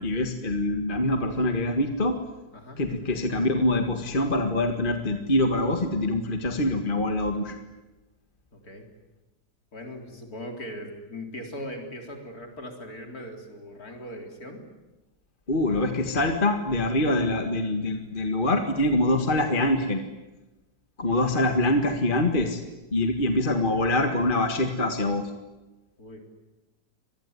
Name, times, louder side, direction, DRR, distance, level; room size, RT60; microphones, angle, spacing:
voice 1, 0.0-2.2 2.8-7.6 15.5-20.0 21.0-22.6 22.9-25.2, left 1 dB, 30° left, 5 dB, 1.9 m, -24 dB
voice 2, 8.5-8.9 9.7-14.6 26.0-26.2, equal, 55° left, 3 dB, 4.4 m, -39 dB
25.5 x 20.5 x 9.7 m, 1.1 s
omnidirectional pair, 1.9 m